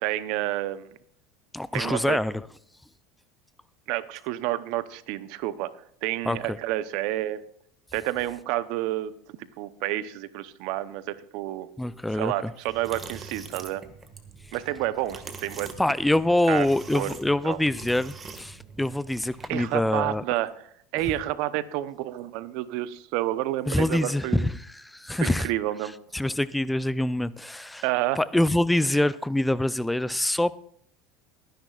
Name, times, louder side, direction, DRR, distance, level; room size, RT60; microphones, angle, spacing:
voice 1, 0.0-0.9 1.7-2.2 3.9-5.7 6.0-7.4 7.9-9.1 9.6-11.7 12.1-13.8 14.5-15.7 16.5-16.7 16.9-17.1 17.4-17.6 19.5-20.5 20.9-24.5 25.2-25.9 27.8-28.2, right 15 dB, 65° right, 0.8 m, -29 dB
voice 2, 1.5-2.5 6.3-6.6 11.8-12.5 15.8-20.2 23.7-25.5 26.1-27.8 28.2-30.5, left 1 dB, 5° left, 0.4 m, -25 dB
sound 1, 12.7-19.7, right 5 dB, 25° right, 1.7 m, -44 dB
22.0 x 10.5 x 2.4 m
hypercardioid pair, 85°, 0 cm